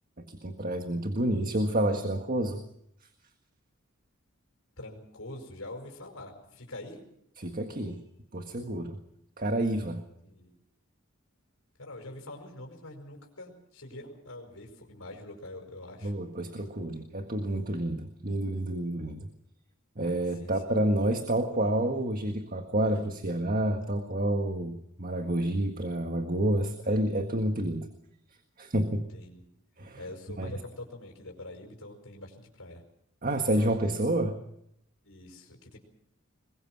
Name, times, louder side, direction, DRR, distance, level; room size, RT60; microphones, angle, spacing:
voice 1, 0.2-2.6 7.4-8.0 8.3-9.0 9.4-10.0 16.0-19.3 20.0-27.9 28.6-29.1 29.8-30.0 30.4-30.5 33.2-34.4, right 1 dB, 40° right, 6 dB, 1.7 m, -29 dB
voice 2, 4.8-7.0 10.2-10.5 11.8-16.3 20.3-20.8 28.9-29.5 30.0-32.8 35.0-35.8, left 2 dB, 90° left, 2 dB, 5.2 m, -45 dB
22.0 x 21.5 x 6.3 m, 0.74 s
head